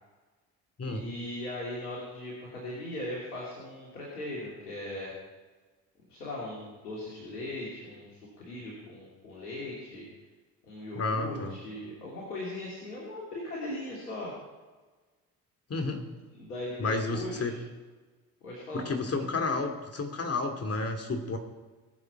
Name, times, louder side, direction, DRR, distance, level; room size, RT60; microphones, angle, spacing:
voice 1, 0.8-5.1 6.1-10.1 10.6-14.3 16.0-17.5 18.4-18.9, left 1 dB, 80° left, -6 dB, 3.2 m, -39 dB
voice 2, 10.9-11.6 15.7-16.0 16.8-17.5 18.7-21.4, left 3 dB, 30° left, 5 dB, 2.5 m, -31 dB
21.0 x 7.6 x 4.8 m, 1.3 s
figure-of-eight pair, 55°, 45 cm